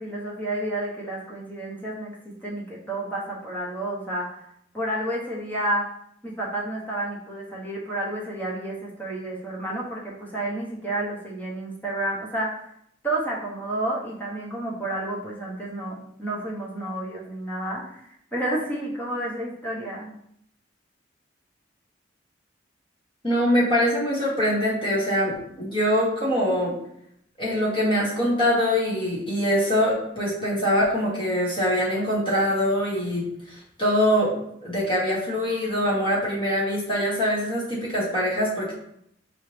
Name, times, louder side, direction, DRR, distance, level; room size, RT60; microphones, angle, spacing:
voice 1, 0.0-2.2 2.4-4.3 4.7-5.9 6.2-12.5 13.0-20.1, right 1 dB, 10° left, -5 dB, 1.0 m, -30 dB
voice 2, 23.2-26.7 27.4-34.4 34.6-38.7, equal, 25° left, -7 dB, 1.6 m, -23 dB
4.7 x 2.9 x 3.3 m, 0.72 s
head